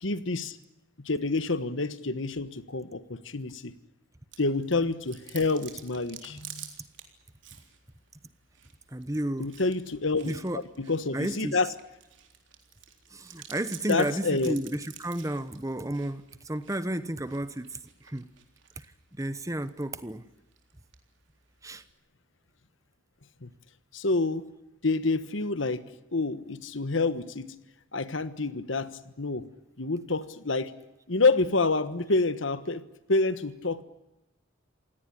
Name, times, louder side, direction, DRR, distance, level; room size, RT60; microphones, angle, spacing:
voice 1, 0.0-0.6 1.0-3.7 4.4-6.7 9.4-11.7 13.9-14.6 23.4-23.5 23.9-24.4 24.8-25.8 26.1-27.5 27.9-29.5 29.8-30.7 31.1-32.8 33.1-33.8, left 3 dB, 70° left, 13 dB, 1.4 m, -28 dB
Chewing mastication, 4.3-21.9, right 10 dB, 65° right, 3.7 m, -52 dB
voice 2, 8.9-9.5 10.2-10.6 11.1-11.6 13.1-18.3 18.8-18.9 19.1-20.2 21.6-21.8, right 1 dB, 15° right, 13 dB, 1.0 m, -32 dB
27.5 x 17.5 x 10.0 m, 0.95 s
head